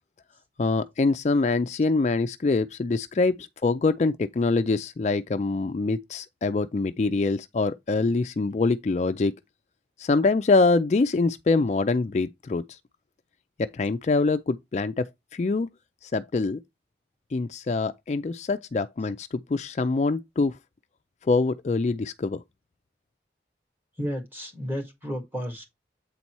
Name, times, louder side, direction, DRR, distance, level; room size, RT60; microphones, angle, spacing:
voice 1, 0.6-9.3 10.0-12.8 13.6-15.1 15.3-15.7 16.0-16.6 17.3-20.6 21.3-22.4, left 3 dB, 40° left, 0.3 m, -24 dB
voice 2, 24.0-25.6, equal, 10° right, 1.9 m, -32 dB
8.1 x 4.1 x 4.5 m
head